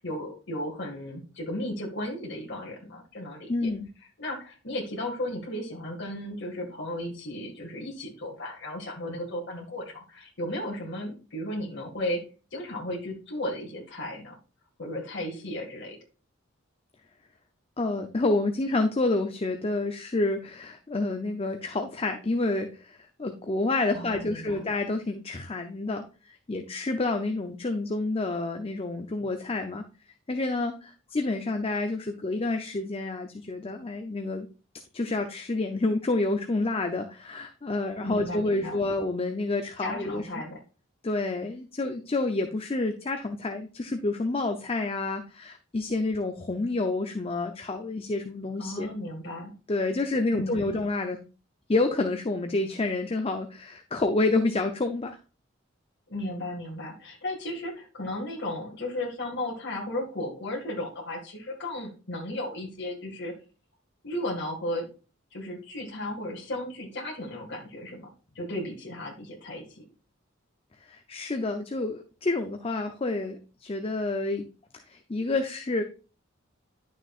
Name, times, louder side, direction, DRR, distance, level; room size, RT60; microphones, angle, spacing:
voice 1, 0.0-3.7 4.2-12.2 12.5-14.4 14.8-16.0 23.9-24.7 38.0-38.9 39.8-40.6 48.6-49.5 50.3-50.7 56.1-63.3 64.0-64.9 65.3-68.1 68.4-69.8, left 1 dB, 60° left, -1 dB, 2.0 m, -35 dB
voice 2, 3.5-3.9 17.8-29.8 30.3-34.5 34.9-40.3 41.0-48.9 49.7-51.2 51.7-55.2 70.9-74.4 74.9-75.8, left 2 dB, 30° left, 6 dB, 0.6 m, -29 dB
11.0 x 6.4 x 2.5 m, 0.35 s
head